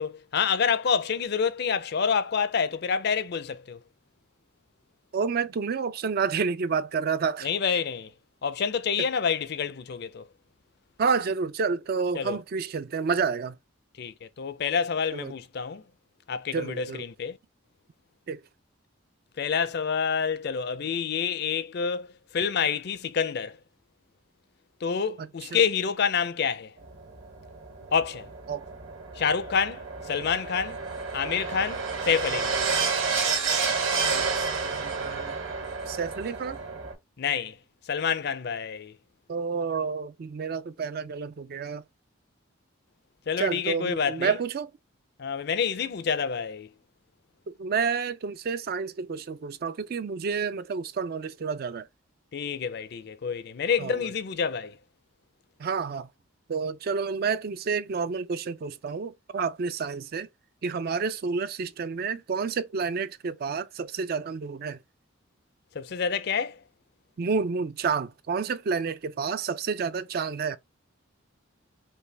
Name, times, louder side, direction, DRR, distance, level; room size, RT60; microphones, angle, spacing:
voice 1, 0.0-3.8 7.4-8.1 8.4-10.3 12.1-12.4 14.0-15.8 16.3-17.4 19.4-22.1 22.3-23.6 24.8-26.7 27.9-28.3 29.1-30.8 31.1-32.6 37.2-37.6 37.8-38.9 43.3-44.4 45.2-46.7 52.3-54.8 65.7-66.6, left 6 dB, 50° left, 0.4 m, -28 dB
voice 2, 5.1-7.5 11.0-13.6 15.1-15.3 16.5-17.0 18.3-18.4 25.5-25.6 28.5-28.7 34.0-35.4 35.9-36.6 39.3-41.8 43.4-44.7 47.5-51.9 53.8-54.0 55.6-56.1 56.5-60.3 60.6-64.8 67.2-70.6, right 5 dB, 45° right, 0.4 m, -29 dB
sound 1, 26.8-36.9, right 5 dB, 70° right, 2.2 m, -30 dB
5.4 x 2.2 x 3.3 m
head